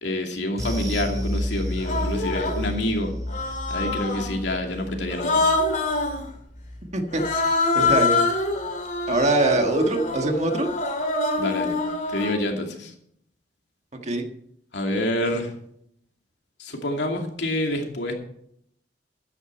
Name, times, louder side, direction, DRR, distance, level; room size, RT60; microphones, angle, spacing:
voice 1, 0.0-3.1 3.7-5.4 11.4-11.8 12.1-12.9 14.7-15.5 16.6-18.1, left 1 dB, 85° left, 2 dB, 2.5 m, -27 dB
Human voice, 0.6-0.8 1.8-2.7 3.3-4.4 5.1-6.2 7.1-12.4, left 3 dB, 45° left, 2.7 m, -25 dB
sound 1, 0.6-9.2 9.5-9.7 10.1-10.2, left 1 dB, 20° right, 2.3 m, -33 dB
voice 2, 6.9-7.5 7.8-8.2 9.1-10.7 14.0-14.2, right 2 dB, 40° right, 4 dB, 1.6 m, -23 dB
13.5 x 10.0 x 4.5 m, 0.69 s
head